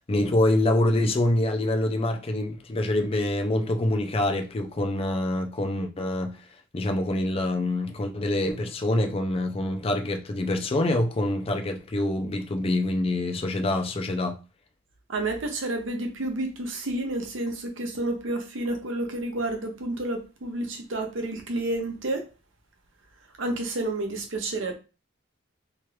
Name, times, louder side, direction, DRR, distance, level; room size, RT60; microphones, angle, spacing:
voice 1, 0.1-6.4 6.7-14.4, left 1 dB, 30° left, 0.4 m, -25 dB
voice 2, 15.1-22.3 23.4-24.7, right 2 dB, 75° right, 0.8 m, -30 dB
2.9 x 2.4 x 3.1 m
head